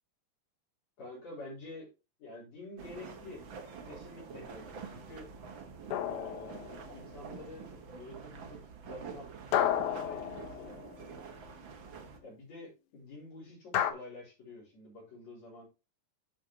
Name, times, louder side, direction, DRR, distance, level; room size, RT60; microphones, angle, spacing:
voice 1, 1.0-1.9 2.2-3.4 3.8-5.3 6.0-9.3 9.8-10.8 12.2-15.7, left 2 dB, 50° left, -5 dB, 4.7 m, -48 dB
sound 1, 2.8-12.2, right 5 dB, 90° right, 1.0 m, -47 dB
sound 2, 5.9-7.1 9.5-11.2 13.7-13.9, left 10 dB, 70° left, 2.0 m, -32 dB
10.5 x 6.3 x 2.9 m, 0.28 s
omnidirectional pair, 4.2 m